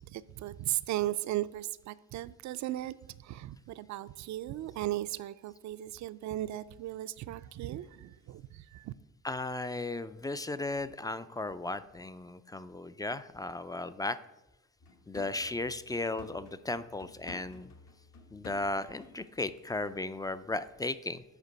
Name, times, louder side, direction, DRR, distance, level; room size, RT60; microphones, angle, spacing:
voice 1, 0.1-2.9 3.2-8.9, right 14 dB, 65° right, 16 dB, 0.4 m, -36 dB
voice 2, 9.2-14.2 15.1-17.7 18.3-21.2, left 2 dB, 15° left, 13 dB, 0.3 m, -35 dB
sound 1, 14.8-19.4 19.7-19.9, left 4 dB, 65° left, 1.3 m, -53 dB
8.3 x 5.1 x 5.1 m, 0.98 s
cardioid pair, 90°, 30 cm